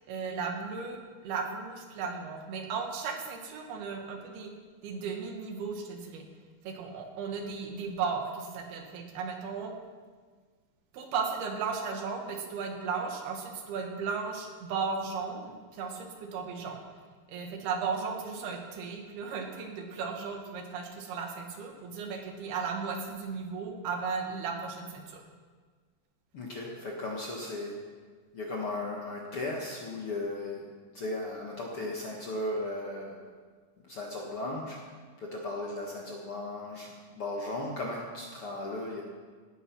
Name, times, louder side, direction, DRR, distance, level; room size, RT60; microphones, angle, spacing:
voice 1, 0.1-4.5 4.8-6.2 6.6-9.7 10.9-16.8 17.3-25.2, right 5 dB, 85° right, 3 dB, 3.5 m, -35 dB
voice 2, 26.3-27.9 28.3-30.7 30.9-33.3 33.9-34.8 35.2-39.0, left 2 dB, 55° left, -2 dB, 1.6 m, -36 dB
17.0 x 9.3 x 6.0 m, 1.6 s
omnidirectional pair, 4.4 m